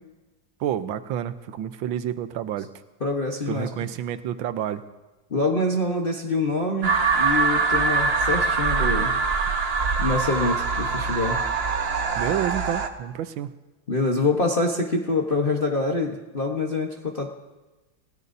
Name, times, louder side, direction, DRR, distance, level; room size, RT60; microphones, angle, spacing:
voice 1, 0.6-2.7 3.5-4.8 12.2-13.5, right 10 dB, 85° right, 11 dB, 1.5 m, -29 dB
voice 2, 3.0-3.7 5.3-9.1 10.0-11.4 13.9-17.3, left 2 dB, 35° left, -1 dB, 1.2 m, -25 dB
sound 1, 6.8-12.9, right 4 dB, 45° right, 0.9 m, -23 dB
29.5 x 18.0 x 2.7 m, 1.1 s
omnidirectional pair, 2.1 m